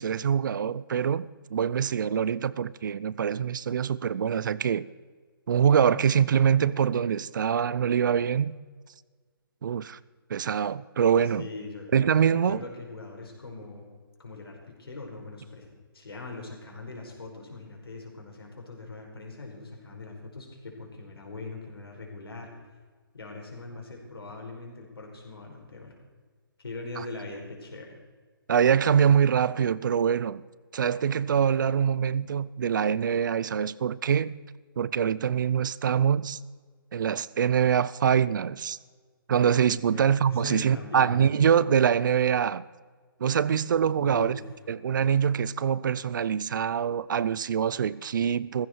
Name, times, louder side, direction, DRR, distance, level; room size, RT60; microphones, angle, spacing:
voice 1, 0.0-4.9 5.5-8.5 9.6-10.0 10.3-11.5 11.9-12.6 27.0-27.1 28.5-30.4 30.7-34.4 34.8-36.4 36.9-38.8 39.3-42.6 43.2-44.4 44.7-48.7, right 8 dB, 55° right, 0.5 m, -24 dB
voice 2, 11.2-11.9 12.3-13.9 14.2-15.7 15.9-22.5 23.1-26.0 26.6-28.0 39.7-41.1 44.0-44.5, left 3 dB, 90° left, 5.1 m, -41 dB
16.0 x 15.5 x 4.6 m
hypercardioid pair, 155°, 12 cm